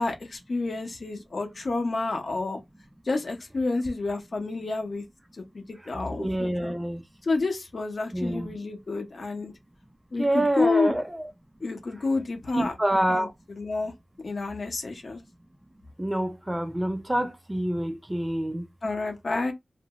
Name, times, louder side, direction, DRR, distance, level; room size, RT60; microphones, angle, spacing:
voice 1, 0.0-2.6 3.0-5.0 5.3-6.7 7.2-9.5 10.1-11.0 11.6-12.8 13.1-13.9 14.2-15.2 18.8-19.5, left 3 dB, 55° left, 0.7 m, -29 dB
voice 2, 6.2-7.0 8.1-8.5 10.2-11.3 12.5-13.3 16.0-18.6, right 1 dB, 15° right, 0.3 m, -27 dB
2.6 x 2.3 x 2.9 m
wide cardioid pair, 120°, 0 cm